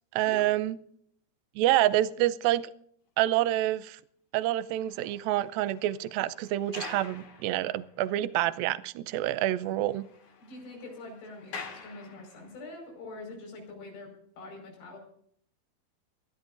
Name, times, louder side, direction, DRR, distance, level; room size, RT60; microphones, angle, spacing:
voice 1, 0.1-0.8 1.6-2.7 3.2-4.0 4.3-10.1, right 14 dB, 80° right, 14 dB, 2.2 m, -27 dB
sound 1, 4.6-8.3 8.6-8.7 9.1-9.2 9.4-12.7 13.4-13.6, left 5 dB, 50° left, 3.0 m, -47 dB
voice 2, 10.4-15.0, left 2 dB, 90° left, 2 dB, 7.3 m, -44 dB
25.0 x 15.5 x 2.6 m, 0.66 s
omnidirectional pair, 4.8 m